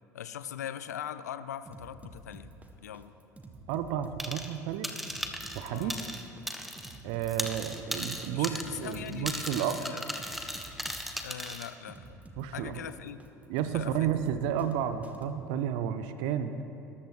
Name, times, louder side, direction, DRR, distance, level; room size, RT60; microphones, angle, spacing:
voice 1, 0.1-3.1 5.6-6.1 8.3-10.0 11.2-12.2 12.5-13.2 13.7-14.1, left 10 dB, 75° left, 14 dB, 0.5 m, -41 dB
sound 1, 1.7-15.3, right 2 dB, 15° right, 1.5 m, -50 dB
voice 2, 3.7-4.9 5.5-5.9 7.0-9.8 12.4-12.8 13.5-16.6, right 9 dB, 60° right, 11 dB, 0.7 m, -31 dB
sound 2, 4.2-4.6 4.8-7.0 7.2-11.7, equal, ahead, 1.2 m, -37 dB
21.5 x 13.0 x 3.2 m, 3.0 s
figure-of-eight pair, 65°, 9 cm